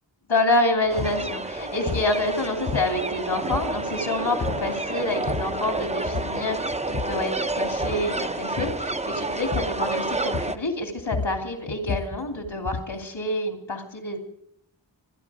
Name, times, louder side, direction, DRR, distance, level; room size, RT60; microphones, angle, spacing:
voice 1, 0.3-14.2, left 2 dB, 75° left, 2 dB, 2.8 m, -27 dB
sound 1, 0.9-1.2 1.9-2.2 2.7-3.2 3.5-4.0 4.4-4.7 5.1-5.6 6.1-6.4 6.7-7.3 7.7-8.1 8.6-8.9 9.5-9.9 10.3-10.7 11.0-13.0, left 5 dB, 35° left, 0.6 m, -32 dB
sound 2, 0.9-10.6, right 2 dB, 15° right, 0.6 m, -29 dB
26.0 x 10.5 x 4.9 m, 0.73 s
wide cardioid pair, 55°, 45 cm